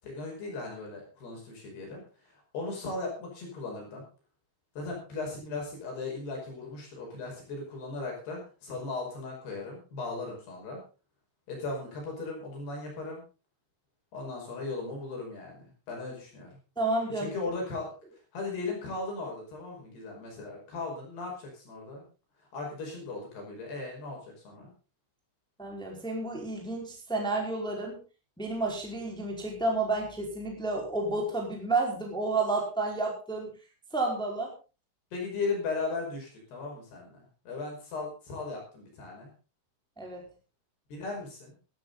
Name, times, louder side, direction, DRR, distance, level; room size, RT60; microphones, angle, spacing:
voice 1, 0.0-2.0 2.5-4.0 4.8-10.8 11.5-13.2 14.1-16.6 17.2-17.9 18.3-22.1 22.5-24.7 35.1-39.3 40.9-41.6, left 3 dB, 55° left, 0 dB, 7.2 m, -37 dB
voice 2, 16.8-17.3 25.6-28.0 28.4-33.5 33.9-34.5 40.0-40.2, right 2 dB, ahead, 0 dB, 4.1 m, -31 dB
16.5 x 13.5 x 4.0 m, 0.33 s
omnidirectional pair, 5.7 m